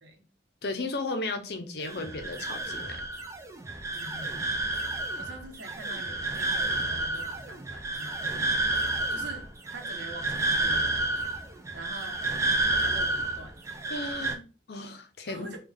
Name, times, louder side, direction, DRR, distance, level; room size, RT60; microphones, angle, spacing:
voice 1, 0.6-3.0 13.9-15.5, left 2 dB, 60° left, 0.6 m, -35 dB
sound 1, 1.8-14.4, right 2 dB, 15° right, 0.4 m, -30 dB
voice 2, 3.9-4.5 5.2-8.6 9.1-10.9 11.7-12.2 12.8-13.6 15.2-15.6, right 1 dB, 70° right, 0.9 m, -44 dB
3.5 x 2.3 x 3.4 m
head